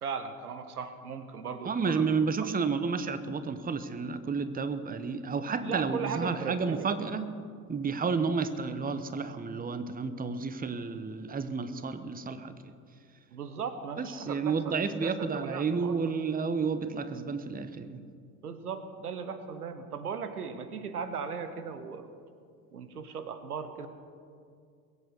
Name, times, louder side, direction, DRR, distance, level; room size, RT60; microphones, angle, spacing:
voice 1, 0.0-2.1 2.4-2.5 5.6-7.0 13.3-16.0 18.4-22.1 22.7-23.9, right 6 dB, 85° right, 10 dB, 1.0 m, -37 dB
voice 2, 1.6-7.3 7.7-12.5 14.0-18.0, right 5 dB, 20° right, 12 dB, 1.0 m, -31 dB
21.5 x 8.4 x 6.5 m, 2.3 s
figure-of-eight pair, 60°, 44 cm